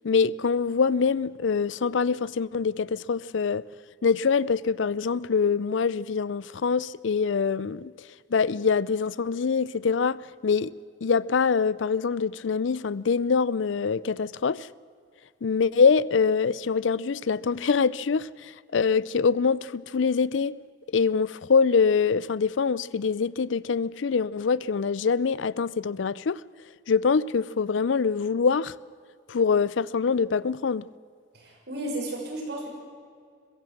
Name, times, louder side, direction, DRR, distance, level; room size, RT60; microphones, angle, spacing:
voice 1, 0.0-3.6 4.0-7.9 8.3-10.7 11.0-14.7 15.4-20.5 20.9-26.4 26.9-28.7 29.3-30.9, left 5 dB, 70° left, 0.5 m, -24 dB
voice 2, 31.4-32.7, right 1 dB, 60° right, 6.3 m, -33 dB
22.0 x 15.5 x 7.7 m
head